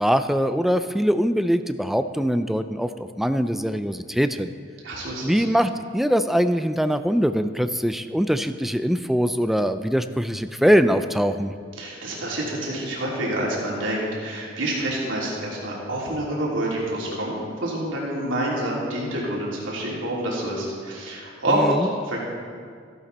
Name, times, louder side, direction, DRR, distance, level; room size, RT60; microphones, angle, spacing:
voice 1, 0.0-4.5 5.2-11.5 21.5-21.9, equal, ahead, 10 dB, 0.4 m, -22 dB
voice 2, 4.8-5.5 11.8-21.7 22.0-22.2, right 1 dB, 85° right, -5 dB, 3.4 m, -27 dB
15.0 x 12.0 x 4.2 m, 2.1 s
head